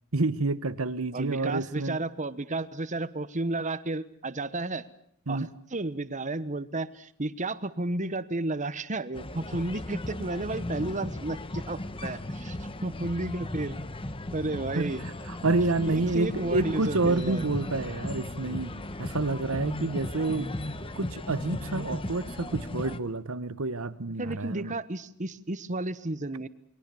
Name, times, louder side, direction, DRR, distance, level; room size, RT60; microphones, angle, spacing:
voice 1, 0.1-2.0 5.3-5.5 14.7-14.9 15.3-20.5 20.9-24.7, right 2 dB, 70° right, 1.2 m, -29 dB
voice 2, 1.1-4.8 5.3-13.7 14.3-15.0 15.9-17.4 24.2-26.5, right 2 dB, 35° right, 1.2 m, -32 dB
sound 1, 9.1-23.0, left 1 dB, 25° left, 1.1 m, -36 dB
29.0 x 22.0 x 7.1 m
head